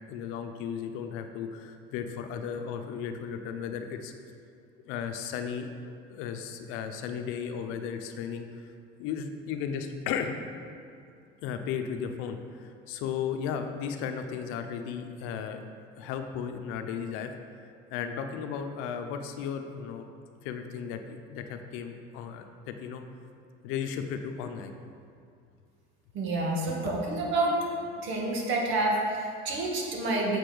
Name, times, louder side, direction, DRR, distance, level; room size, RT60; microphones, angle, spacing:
voice 1, 0.1-4.1 4.9-8.5 9.0-10.3 11.4-15.6 16.0-17.3 17.9-20.0 20.4-23.0 23.6-24.7, left 7 dB, 75° left, 6 dB, 0.9 m, -35 dB
voice 2, 26.1-27.6 28.0-30.4, right 2 dB, 65° right, -1 dB, 2.1 m, -28 dB
7.9 x 7.4 x 5.1 m, 2.4 s
cardioid pair, 130°, 21 cm